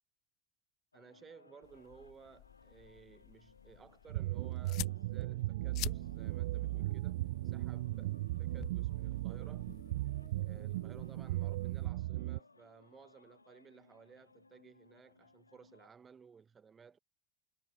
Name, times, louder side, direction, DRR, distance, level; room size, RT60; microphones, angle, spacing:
sound 1, 0.9-15.9, left 3 dB, 85° left, 3.0 m, -64 dB
voice 1, 0.9-8.1 8.4-9.7 10.3-17.0, right 6 dB, 25° right, 4.2 m, -58 dB
sound 2, 1.6-11.9, left 20 dB, 50° left, 1.5 m, -50 dB
sound 3, 4.1-12.4, right 17 dB, 65° right, 0.3 m, -37 dB
figure-of-eight pair, 70°, 0 cm